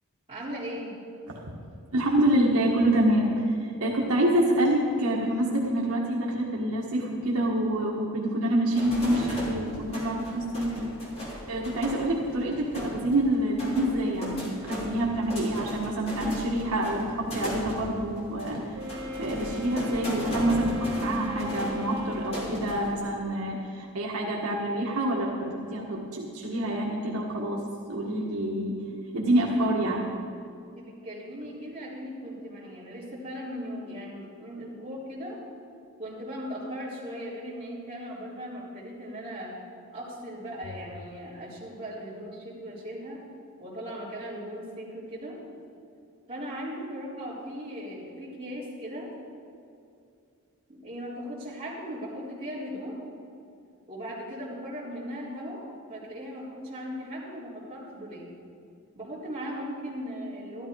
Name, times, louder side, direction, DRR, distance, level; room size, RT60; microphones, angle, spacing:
voice 1, 0.3-0.9 30.8-35.4 36.0-39.5 39.9-43.2 43.6-45.4 46.3-49.1 50.7-53.0 53.9-55.6 55.9-58.3 58.9-60.7, equal, 25° right, -8 dB, 3.8 m, -38 dB
voice 2, 1.9-10.9 11.5-18.6 19.2-27.6 27.9-28.8 29.1-30.0, right 1 dB, 75° right, -3 dB, 1.6 m, -27 dB
sound 1, 8.7-23.0, equal, 25° left, 3.3 m, -37 dB
Wind instrument woodwind instrument, 18.7-22.8, left 1 dB, 55° right, 1.4 m, -38 dB
13.0 x 12.5 x 4.7 m, 2.5 s
head